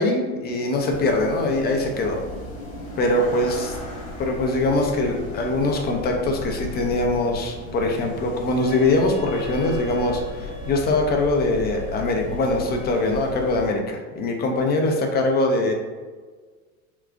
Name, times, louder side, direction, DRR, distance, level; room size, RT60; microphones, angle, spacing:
voice 1, 0.0-2.2 3.0-3.8 4.2-15.7, left 2 dB, 25° left, 2 dB, 0.5 m, -22 dB
sound 1, 0.9-13.7, left 2 dB, 55° left, 1.2 m, -36 dB
Wind instrument woodwind instrument, 8.6-13.6, right 4 dB, 15° right, 0.8 m, -40 dB
3.7 x 2.3 x 2.5 m, 1.4 s
hypercardioid pair, 80°, 43 cm